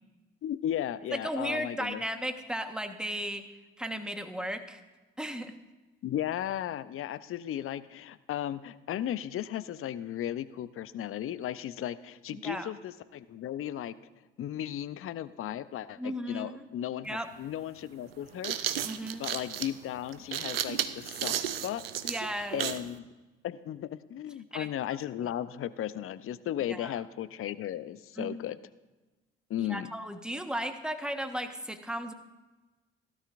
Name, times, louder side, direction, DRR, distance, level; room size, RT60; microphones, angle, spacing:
voice 1, 0.4-2.0 6.0-13.9 14.4-18.6 19.0-22.1 22.5-23.0 23.4-28.6 29.5-29.9, left 11 dB, 50° left, 16 dB, 0.6 m, -35 dB
voice 2, 1.1-3.4 3.8-4.8 5.2-5.5 12.3-12.7 16.0-16.7 17.0-17.3 18.8-19.2 22.0-22.6 24.5-24.7 26.7-27.0 28.2-28.4 29.6-32.1, equal, 5° right, 7 dB, 1.3 m, -35 dB
sound 1, 17.0-17.1 18.1-22.9, right 10 dB, 90° right, 0.5 m, -33 dB
16.5 x 12.0 x 2.6 m, 1.2 s
hypercardioid pair, 45°, 29 cm